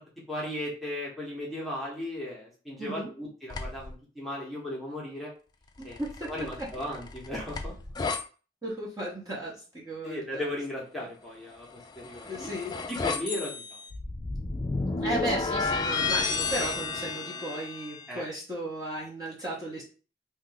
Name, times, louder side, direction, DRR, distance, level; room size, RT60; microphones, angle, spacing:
voice 1, 0.3-5.3 5.8-6.0 6.3-7.7 10.0-11.7 12.0-12.5 12.9-13.5 18.1-18.2, left 1 dB, ahead, -5 dB, 0.9 m, -36 dB
voice 2, 2.8-3.1 5.8-6.7 8.6-10.5 11.0-11.1 12.2-12.7 15.0-19.8, right 1 dB, 20° right, -6 dB, 0.9 m, -35 dB
sound 1, 3.5-3.9 5.8-8.2 11.7-18.1, left 4 dB, 20° left, 0.3 m, -32 dB
2.7 x 2.5 x 3.9 m, 0.37 s
head